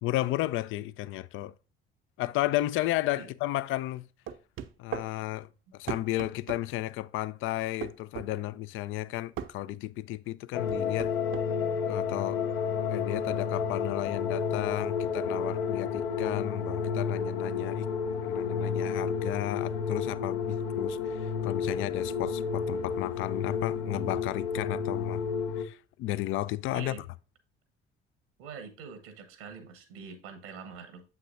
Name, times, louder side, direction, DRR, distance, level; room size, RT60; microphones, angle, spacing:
voice 1, 0.0-1.5 2.2-4.1 4.8-11.1 11.9-12.4 12.9-17.9 18.2-25.2 25.6-27.0, left 16 dB, 45° left, 0.5 m, -33 dB
sound 1, 4.3-5.1 5.9-6.6 7.8-8.3 9.4-9.6 10.7-11.5, right 9 dB, 40° right, 0.8 m, -37 dB
sound 2, 10.5-25.6, left 6 dB, 70° left, 0.9 m, -31 dB
voice 2, 28.4-31.0, right 5 dB, 65° right, 1.3 m, -44 dB
7.6 x 5.9 x 2.5 m
figure-of-eight pair, 55°, 30 cm